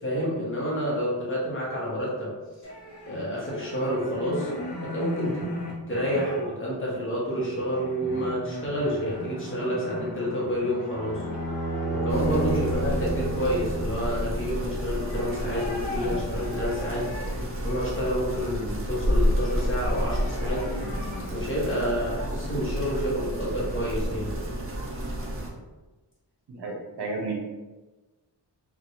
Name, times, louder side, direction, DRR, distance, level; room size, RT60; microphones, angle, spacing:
voice 1, 0.0-2.3 3.0-4.5 4.8-5.5 5.9-11.2 11.9-17.2 17.6-20.7 21.3-24.3, equal, 30° left, -6 dB, 0.8 m, -29 dB
sound 1, 2.6-6.5 7.0-18.5 18.9-21.2, equal, 70° left, 0.7 m, -39 dB
sound 2, 10.9-15.2, right 1 dB, 45° left, 1.1 m, -31 dB
sound 3, 12.1-25.5, equal, 30° right, 0.4 m, -30 dB
voice 2, 26.5-27.3, right 3 dB, 65° right, -2 dB, 0.7 m, -33 dB
2.5 x 2.2 x 2.8 m, 1.2 s
wide cardioid pair, 170°, 43 cm